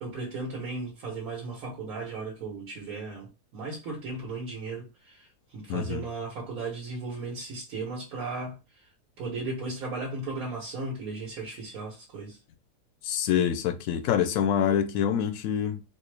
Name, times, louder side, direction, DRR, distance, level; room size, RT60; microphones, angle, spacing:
voice 1, 0.0-8.9 9.2-12.4, right 3 dB, 65° right, 1.4 m, -36 dB
voice 2, 5.7-6.1 13.0-15.8, left 9 dB, 70° left, 0.9 m, -26 dB
4.4 x 2.0 x 3.2 m
omnidirectional pair, 1.7 m